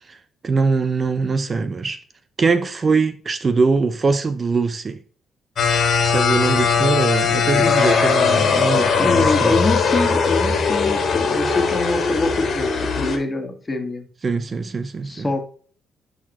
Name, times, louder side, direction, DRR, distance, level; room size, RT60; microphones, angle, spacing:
voice 1, 0.4-2.0 2.4-5.0 6.0-9.6 14.2-15.3, right 4 dB, 35° right, 0.7 m, -22 dB
sound 1, 5.6-13.2, left 5 dB, 60° left, 1.8 m, -19 dB
voice 2, 7.5-7.9 9.0-14.1 15.0-15.5, left 3 dB, 25° left, 1.7 m, -25 dB
11.0 x 4.0 x 3.1 m
cardioid pair, 90°, 0 cm